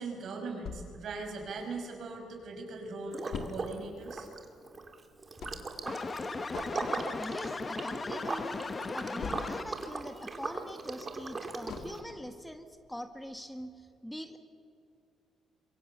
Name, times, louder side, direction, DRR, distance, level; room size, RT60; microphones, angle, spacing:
voice 1, 0.0-4.3, right 3 dB, 65° right, 3 dB, 6.0 m, -40 dB
sound 1, 0.6-2.2 2.6-2.7 2.8-9.9 10.2-12.4 12.8-12.9 13.3-13.4, left 5 dB, 70° left, 2.1 m, -45 dB
Liquid, 3.1-3.8 4.0-12.0, right 3 dB, 30° right, 2.7 m, -39 dB
sound 2, 5.9-10.0, left 4 dB, 30° left, 1.0 m, -37 dB
voice 2, 7.1-8.6 8.9-14.4, equal, 5° left, 8 dB, 1.6 m, -43 dB
26.0 x 23.0 x 6.9 m, 2.5 s
cardioid pair, 90°, 0 cm